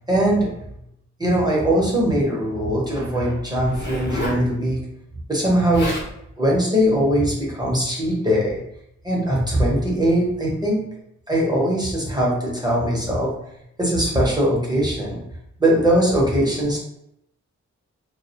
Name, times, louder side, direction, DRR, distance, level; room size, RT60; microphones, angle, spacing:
voice 1, 0.1-0.5 1.2-4.8 5.3-6.0 6.4-8.6 9.0-10.8 11.3-13.3 13.8-15.2 15.6-16.8, right 1 dB, 15° right, -4 dB, 0.8 m, -20 dB
Zipper (clothing), 3.6-4.4 5.4-5.5 5.7-6.1 6.8-7.0, left 1 dB, 40° left, 0.8 m, -29 dB
2.2 x 2.1 x 2.8 m, 0.78 s
cardioid pair, 55°, 29 cm